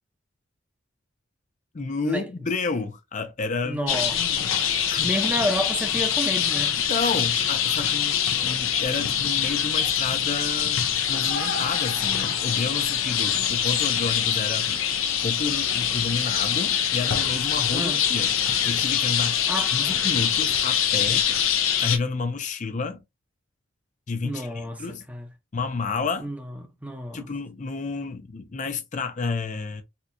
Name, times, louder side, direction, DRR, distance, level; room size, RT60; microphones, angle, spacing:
voice 1, 1.7-5.1 6.9-14.7 15.2-18.3 18.6-19.4 19.7-21.2 21.8-23.0 24.1-25.0 25.5-26.3 27.1-29.8, left 4 dB, 40° left, 0.5 m, -30 dB
voice 2, 3.6-4.2 5.0-6.8 17.7-18.0 19.5-20.0 24.2-25.3 26.2-26.5 26.8-27.2, equal, 5° right, 0.6 m, -30 dB
sound 1, 3.9-22.0, left 9 dB, 85° left, 0.6 m, -24 dB
4.3 x 2.3 x 2.6 m
head